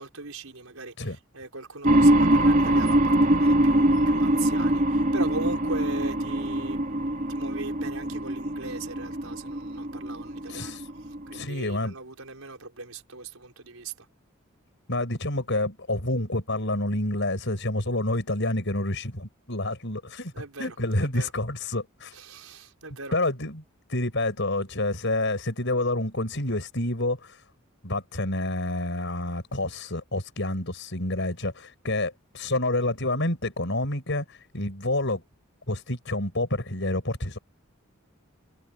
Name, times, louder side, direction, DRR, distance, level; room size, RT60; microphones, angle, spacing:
voice 1, 0.0-6.8 7.3-10.8 11.3-14.1 20.3-21.3 22.1-23.2, right 3 dB, 85° right, 4.9 m, -39 dB
sound 1, 1.8-11.4, right 1 dB, 40° right, 3.3 m, -23 dB
voice 2, 10.5-10.9 11.3-12.0 14.9-20.3 20.6-22.2 23.1-23.6 23.9-27.4 27.8-35.2 35.7-37.4, left 1 dB, 60° left, 6.8 m, -28 dB
head